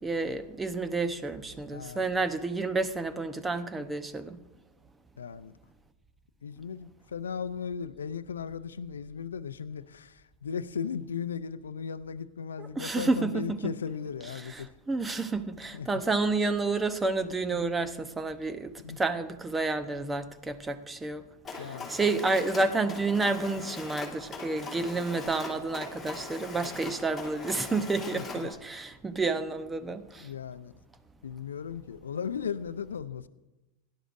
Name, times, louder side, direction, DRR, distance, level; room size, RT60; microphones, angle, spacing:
voice 1, 0.0-4.4 12.6-13.7 14.4-21.2 21.6-30.3, right 3 dB, 15° right, 0.9 m, -30 dB
voice 2, 1.7-2.2 5.2-5.5 6.4-14.7 15.7-15.9 17.5-17.9 18.8-19.0 21.6-21.9 28.1-28.5 30.2-30.7 31.2-33.3, left 7 dB, 85° left, 0.5 m, -37 dB
Mechanisms, 21.4-28.5, left 4 dB, 15° left, 2.7 m, -41 dB
17.0 x 11.0 x 2.6 m
hypercardioid pair, 100°, 0 cm